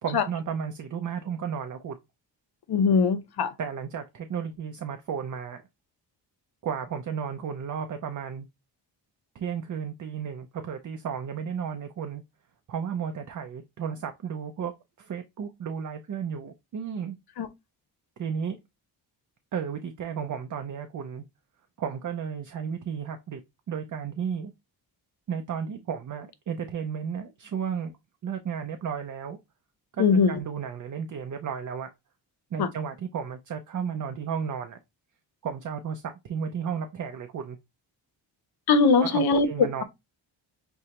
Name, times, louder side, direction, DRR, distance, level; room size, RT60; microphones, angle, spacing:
voice 1, 0.0-2.0 3.6-5.6 6.6-8.5 9.3-12.2 12.7-14.7 15.0-17.2 18.2-18.6 19.5-21.2 21.8-23.4 23.7-24.5 25.3-27.9 28.2-29.4 29.9-31.9 32.5-34.8 35.4-37.6 39.0-39.8, right 7 dB, 45° right, 0.6 m, -33 dB
voice 2, 2.7-3.5 17.4-17.5 30.0-30.4 32.6-32.7 38.7-39.8, left 5 dB, 55° left, 0.7 m, -21 dB
6.1 x 2.2 x 2.9 m
cardioid pair, 105°, 44 cm